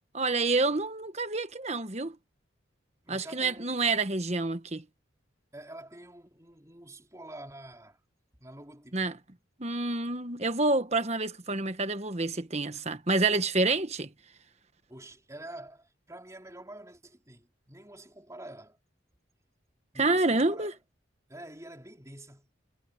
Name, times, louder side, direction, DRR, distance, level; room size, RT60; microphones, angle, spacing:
voice 1, 0.1-2.1 3.1-4.8 8.9-9.1 9.6-14.1 20.0-20.7, right 3 dB, 35° right, 1.4 m, -28 dB
voice 2, 3.0-3.8 5.5-8.0 8.4-9.1 14.9-18.8 19.9-20.8 21.3-22.5, right 1 dB, 15° right, 4.4 m, -47 dB
head